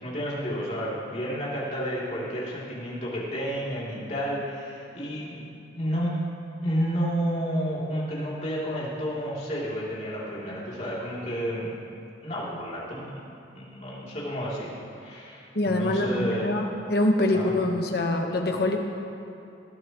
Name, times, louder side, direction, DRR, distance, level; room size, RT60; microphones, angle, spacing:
voice 1, 0.0-6.2 6.6-11.8 12.2-13.2 13.5-14.7 15.0-16.6 17.3-17.5, equal, 35° left, -7 dB, 3.1 m, -31 dB
voice 2, 15.5-18.8, left 1 dB, 55° left, 2 dB, 1.2 m, -24 dB
19.0 x 13.0 x 3.1 m, 2.7 s
head